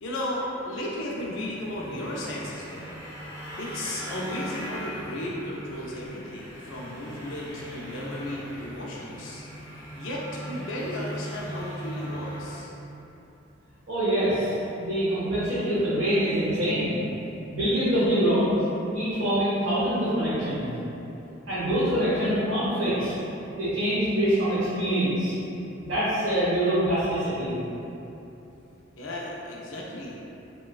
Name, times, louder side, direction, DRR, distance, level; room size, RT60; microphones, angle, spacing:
voice 1, 0.0-3.0 3.6-9.4 9.9-12.7 29.0-30.2, left 1 dB, 70° left, -4 dB, 0.4 m, -34 dB
sound 1, 1.1-12.6, equal, 15° right, 0.6 m, -39 dB
voice 2, 13.9-17.0 17.5-18.6 18.9-20.7 21.5-23.1 23.6-25.3 25.8-27.6, right 1 dB, 70° right, -13 dB, 0.7 m, -25 dB
3.0 x 2.2 x 2.3 m, 2.9 s
head